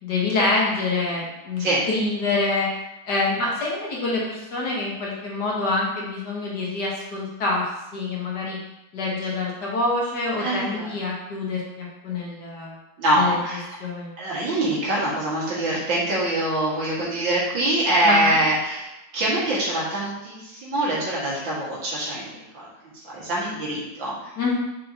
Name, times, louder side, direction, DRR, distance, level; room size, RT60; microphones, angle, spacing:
voice 1, 0.0-2.7 3.0-8.6 8.9-12.8 13.2-13.3 13.8-14.1 18.0-18.4 24.4-24.5, left 3 dB, 55° left, -4 dB, 1.8 m, -26 dB
voice 2, 10.4-10.9 13.0-13.7 14.2-22.7 22.9-24.3, right 1 dB, 65° right, -7 dB, 2.6 m, -24 dB
6.3 x 5.5 x 2.9 m, 0.92 s
omnidirectional pair, 2.3 m